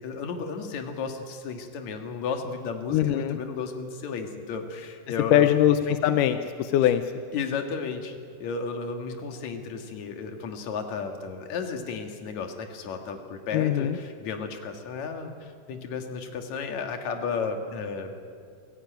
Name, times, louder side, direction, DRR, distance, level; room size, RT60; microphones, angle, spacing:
voice 1, 0.0-5.5 5.9-6.0 7.3-18.1, left 5 dB, 65° left, 5 dB, 3.0 m, -33 dB
voice 2, 2.9-3.4 5.3-7.0 13.5-14.0, left 11 dB, 85° left, 9 dB, 2.3 m, -22 dB
26.0 x 17.0 x 9.2 m, 2.3 s
omnidirectional pair, 3.7 m